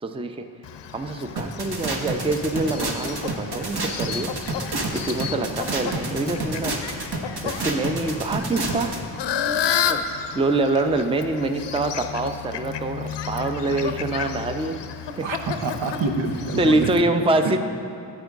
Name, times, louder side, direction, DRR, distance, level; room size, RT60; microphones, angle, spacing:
voice 1, 0.0-0.5 0.9-4.3 4.9-6.7 7.4-9.0 9.5-14.8 15.2-15.3 16.6-17.6, right 2 dB, 10° right, 7 dB, 0.5 m, -25 dB
Fowl, 0.6-17.0, left 8 dB, 65° left, 0.7 m, -32 dB
sound 1, 1.4-9.0, right 2 dB, 55° right, 1.3 m, -29 dB
voice 2, 15.2-17.0 17.4-17.6, right 3 dB, 70° right, 4 dB, 0.9 m, -27 dB
10.0 x 8.7 x 3.6 m, 2.7 s
supercardioid pair, 40°, 47 cm